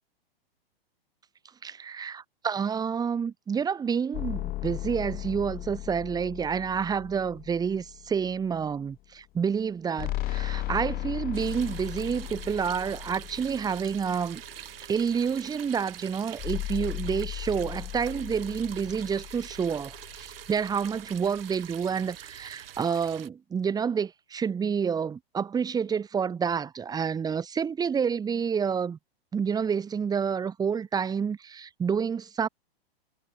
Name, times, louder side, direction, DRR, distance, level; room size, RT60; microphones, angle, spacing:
voice 1, 1.6-14.4 14.9-29.0 29.3-32.5, right 6 dB, 15° right, 1.0 m, -29 dB
sound 1, 4.1-8.6 10.0-14.8 16.4-20.7, left 17 dB, 30° left, 1.6 m, -37 dB
sound 2, 11.3-23.3, right 11 dB, 70° right, 2.1 m, -45 dB
hypercardioid pair, 120°, 30 cm